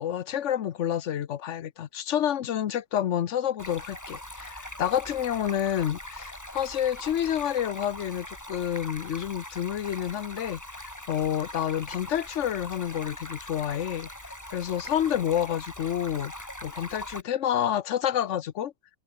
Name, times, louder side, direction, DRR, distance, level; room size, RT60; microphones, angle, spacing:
voice 1, 0.0-16.3 16.6-18.7, left 10 dB, 80° left, 1.2 m, -29 dB
Stream, 3.6-17.2, left 1 dB, 15° left, 3.7 m, -42 dB
omnidirectional pair, 1.2 m